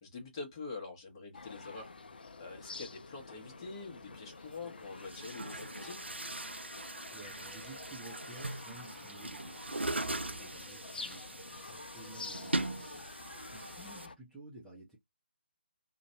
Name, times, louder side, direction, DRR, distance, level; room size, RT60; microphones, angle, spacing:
voice 1, 0.0-6.0 12.3-12.4, left 4 dB, 25° left, 1.0 m, -46 dB
sound 1, 1.3-14.1, left 3 dB, 55° left, 0.4 m, -49 dB
Chatter / Gurgling / Tap, 4.1-4.2 4.9-14.1, right 2 dB, 85° right, 0.4 m, -40 dB
voice 2, 7.1-13.1 13.5-15.0, right 2 dB, 5° right, 0.6 m, -53 dB
2.5 x 2.2 x 2.6 m
figure-of-eight pair, 145°, 6 cm